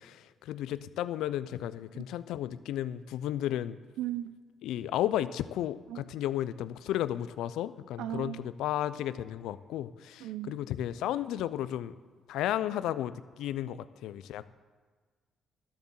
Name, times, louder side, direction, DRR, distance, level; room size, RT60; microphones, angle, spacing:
voice 1, 0.0-3.8 4.6-11.9 12.3-14.5, left 12 dB, 90° left, 15 dB, 0.4 m, -33 dB
voice 2, 4.0-4.4 5.9-6.0 8.0-8.4 10.2-10.5, right 13 dB, 90° right, 13 dB, 0.6 m, -36 dB
12.0 x 7.3 x 7.1 m, 1.5 s
cardioid pair, 90°, 0 cm